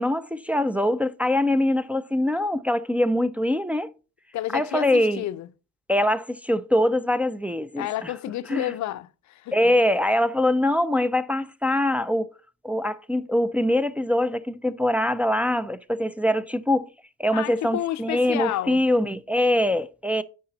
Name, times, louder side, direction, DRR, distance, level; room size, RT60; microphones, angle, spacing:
voice 1, 0.0-3.9 4.5-5.2 5.9-8.1 8.5-8.7 9.5-12.3 12.6-16.9 17.2-20.2, left 1 dB, 5° right, 0.4 m, -23 dB
voice 2, 4.3-5.5 7.8-9.8 17.3-18.8, left 14 dB, 70° left, 0.5 m, -30 dB
8.4 x 4.8 x 3.9 m
cardioid pair, 90°, 30 cm